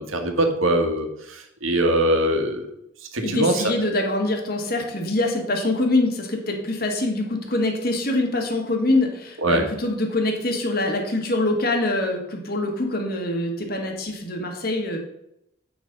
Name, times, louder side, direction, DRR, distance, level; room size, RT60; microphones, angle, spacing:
voice 1, 0.0-2.7 3.1-3.7 9.4-9.7, right 1 dB, 80° right, 4 dB, 1.6 m, -22 dB
voice 2, 3.2-15.0, left 2 dB, 45° left, 2 dB, 1.7 m, -24 dB
8.7 x 6.4 x 5.3 m, 0.80 s
head